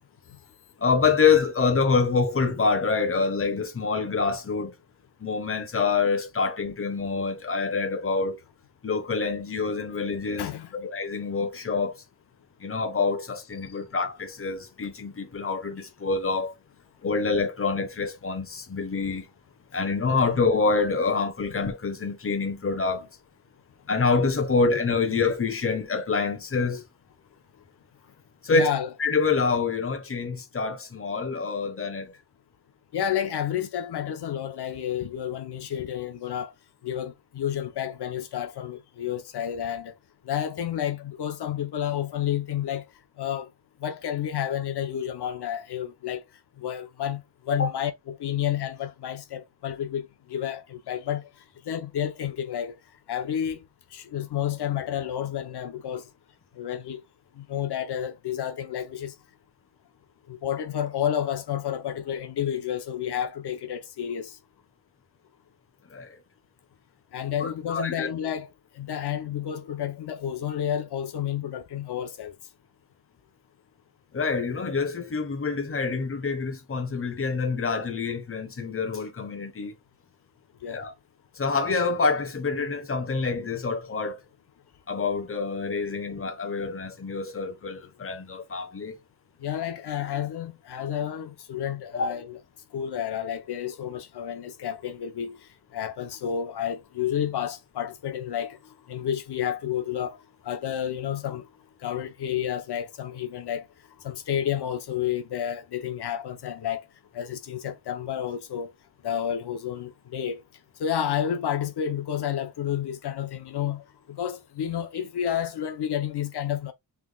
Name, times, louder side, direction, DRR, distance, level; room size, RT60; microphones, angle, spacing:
voice 1, 0.8-4.7 5.2-8.4 8.8-10.5 10.8-12.0 12.6-16.5 17.0-19.3 19.7-23.1 23.9-26.8 28.4-28.7 29.0-32.2 47.5-47.7 65.9-66.2 67.4-68.1 74.1-79.7 80.7-80.9 81.3-84.2 84.9-89.0 92.0-92.1, left 4 dB, 35° left, 1.2 m, -26 dB
voice 2, 10.4-10.9 28.5-28.9 32.9-36.5 36.8-39.9 40.2-42.8 43.2-43.5 43.8-46.2 46.6-51.3 51.7-52.7 53.1-53.6 53.9-56.0 56.6-57.0 57.4-59.1 60.3-64.4 67.1-68.5 68.8-72.3 80.6-80.9 89.4-92.4 92.7-95.4 95.7-98.6 98.9-100.2 100.4-101.5 101.8-103.7 104.0-106.8 107.1-108.7 109.0-110.4 110.8-116.7, left 9 dB, 85° left, 0.9 m, -30 dB
5.9 x 3.5 x 2.3 m
wide cardioid pair, 135°, 39 cm